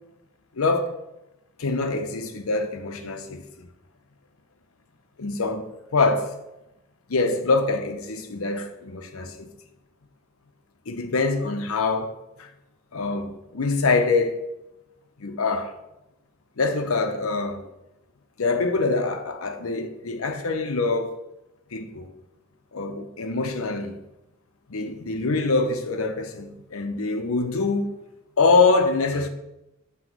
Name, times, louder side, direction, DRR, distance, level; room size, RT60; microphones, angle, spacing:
voice 1, 0.6-0.9 1.6-3.7 5.2-6.3 7.1-9.5 10.9-12.5 12.9-14.4 15.2-15.7 16.6-17.6 18.4-21.2 21.7-22.1 22.7-24.0 24.7-27.9 28.4-29.3, left 3 dB, 85° left, 0.7 m, -24 dB
7.8 x 3.1 x 5.9 m
head